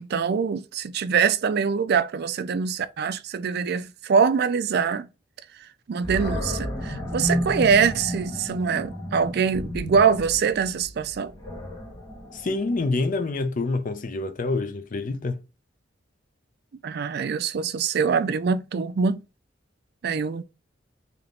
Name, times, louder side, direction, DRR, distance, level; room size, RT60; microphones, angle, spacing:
voice 1, 0.0-5.1 5.9-11.3 16.8-19.2 20.0-20.4, right 6 dB, 55° right, 0.4 m, -24 dB
Animal, 6.0-13.1, equal, 20° left, 1.1 m, -32 dB
voice 2, 12.3-15.4, left 3 dB, 45° left, 0.5 m, -27 dB
3.5 x 2.8 x 3.7 m
head